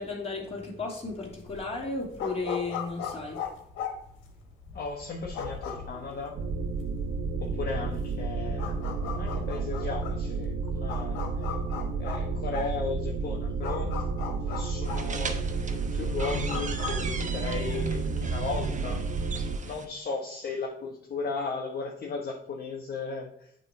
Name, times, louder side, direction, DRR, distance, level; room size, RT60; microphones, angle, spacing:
voice 1, 0.0-3.4, left 3 dB, 30° left, -3 dB, 2.7 m, -34 dB
sound 1, 1.1-17.0, left 7 dB, 90° left, 1.2 m, -39 dB
voice 2, 4.7-6.4 7.4-11.5 12.0-13.9 14.4-19.0 19.6-23.7, left 4 dB, 50° left, 0 dB, 1.0 m, -36 dB
sound 2, 6.3-19.6, right 4 dB, 65° right, 1.0 m, -31 dB
sound 3, 14.8-19.8, right 4 dB, 40° right, 1.0 m, -36 dB
8.7 x 3.2 x 4.9 m, 0.70 s
cardioid pair, 90°, 20 cm